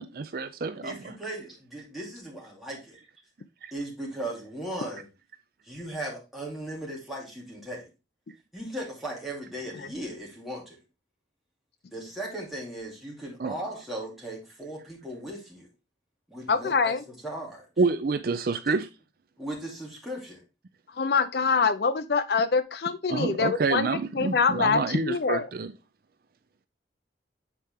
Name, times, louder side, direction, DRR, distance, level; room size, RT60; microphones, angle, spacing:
voice 1, 0.0-1.0 3.6-3.7 13.4-13.5 17.8-18.9 23.1-25.7, right 4 dB, 50° right, 0.5 m, -28 dB
voice 2, 0.8-3.0 3.7-5.1 5.6-7.9 8.5-10.8 11.9-15.7 16.3-17.7 19.4-20.4, right 1 dB, ahead, 2.5 m, -37 dB
voice 3, 16.5-17.0 20.9-23.9 24.1-25.5, left 5 dB, 55° left, 0.4 m, -25 dB
8.2 x 4.4 x 3.5 m
head